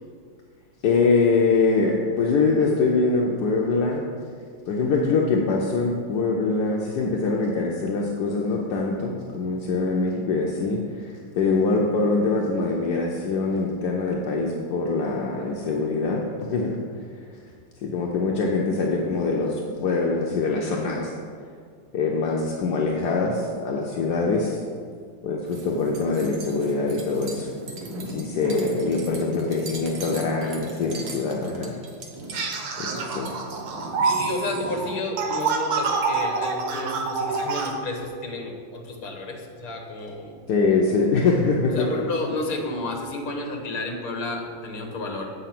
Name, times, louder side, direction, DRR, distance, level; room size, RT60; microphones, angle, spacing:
voice 1, 0.8-4.0 4.7-16.8 17.8-21.1 21.9-24.6 25.2-27.5 28.1-31.7 32.8-33.3 40.5-42.0, left 3 dB, 65° left, -1 dB, 1.1 m, -24 dB
sound 1, 25.5-34.9, right 1 dB, 70° right, 2.0 m, -38 dB
sound 2, 32.3-37.7, right 4 dB, 85° right, 1.8 m, -26 dB
voice 2, 34.0-40.4 41.7-45.3, left 2 dB, 50° left, 1 dB, 1.4 m, -31 dB
8.0 x 5.6 x 5.9 m, 2.1 s
omnidirectional pair, 2.4 m